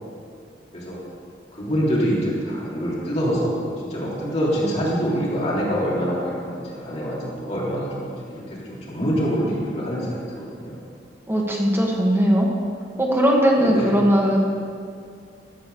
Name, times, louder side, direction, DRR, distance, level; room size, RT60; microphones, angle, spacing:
voice 1, 1.5-10.8 13.6-13.9, equal, 35° left, -7 dB, 2.9 m, -25 dB
voice 2, 11.3-12.5 13.0-14.4, equal, 15° right, -2 dB, 1.3 m, -19 dB
12.5 x 4.5 x 6.8 m, 2.3 s
head